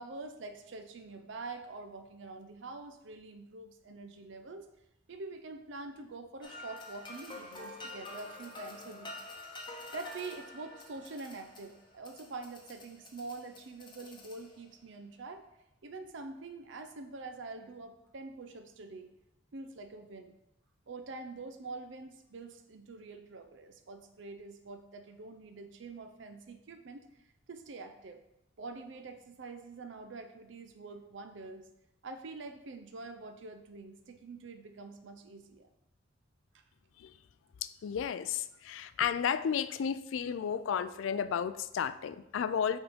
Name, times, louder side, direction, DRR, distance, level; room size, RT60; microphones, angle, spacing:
voice 1, 0.0-4.7 5.1-9.5 9.9-15.4 15.8-19.1 19.5-20.3 20.9-27.1 27.5-28.2 28.6-31.7 32.0-35.7 36.5-36.6, right 3 dB, 65° right, 7 dB, 0.5 m, -45 dB
sound 1, 6.4-14.8, left 2 dB, 25° left, 0.8 m, -48 dB
voice 2, 37.6-42.8, left 7 dB, 70° left, 14 dB, 0.3 m, -33 dB
6.1 x 3.7 x 5.0 m, 0.84 s
head